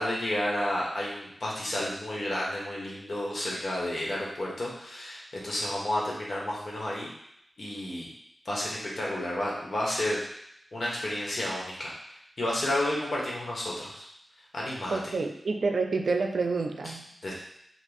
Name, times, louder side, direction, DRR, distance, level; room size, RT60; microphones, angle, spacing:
voice 1, 0.0-7.1 7.6-8.1 8.4-10.3 10.7-11.9 12.4-14.0 14.5-15.0 17.2-17.3, left 1 dB, 65° left, -4 dB, 1.4 m, -31 dB
voice 2, 14.9-17.1, right 4 dB, 80° right, 5 dB, 0.5 m, -28 dB
5.8 x 2.5 x 3.5 m, 0.75 s
wide cardioid pair, 65°, 0 cm